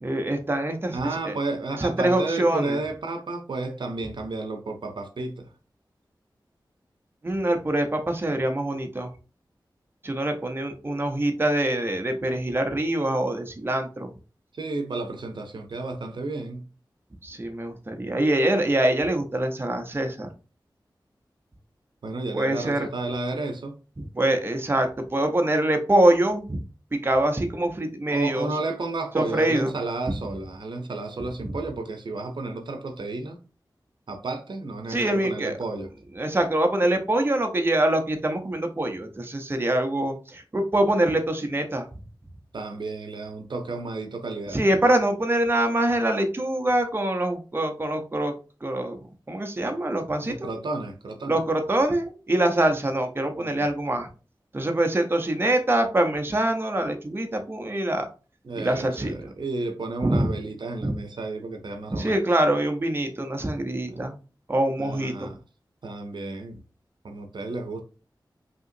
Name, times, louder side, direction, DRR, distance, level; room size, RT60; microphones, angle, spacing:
voice 1, 0.0-1.3 1.8-2.8 7.2-9.1 10.0-14.1 17.2-20.3 22.3-22.9 24.0-26.6 26.9-28.5 29.1-29.7 34.9-35.6 36.2-41.9 44.5-48.3 48.6-50.5 51.3-54.1 54.5-58.1 58.6-59.1 60.0-60.3 60.8-60.9 61.9-64.1 64.5-65.3, right 1 dB, 30° right, 0.7 m, -24 dB
voice 2, 0.9-5.5 14.5-16.7 22.0-23.8 28.1-33.4 34.1-35.9 42.5-44.6 50.2-51.4 53.4-53.7 58.4-62.2 63.9-64.1 64.8-65.4 65.8-66.6 67.0-67.8, right 3 dB, 75° right, 0.6 m, -32 dB
5.4 x 2.9 x 2.6 m
wide cardioid pair, 90°, 8 cm